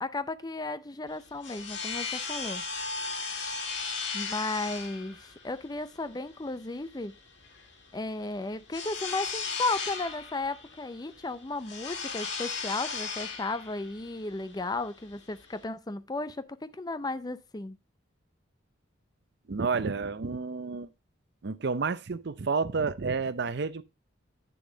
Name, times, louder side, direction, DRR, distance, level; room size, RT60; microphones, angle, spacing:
voice 1, 0.0-2.6 4.1-7.1 7.9-17.8, left 2 dB, 20° left, 0.5 m, -34 dB
sound 1, 1.1-15.6, left 5 dB, 65° left, 1.6 m, -37 dB
voice 2, 19.5-20.9 21.4-23.8, right 4 dB, 60° right, 0.6 m, -30 dB
9.4 x 6.9 x 3.8 m
head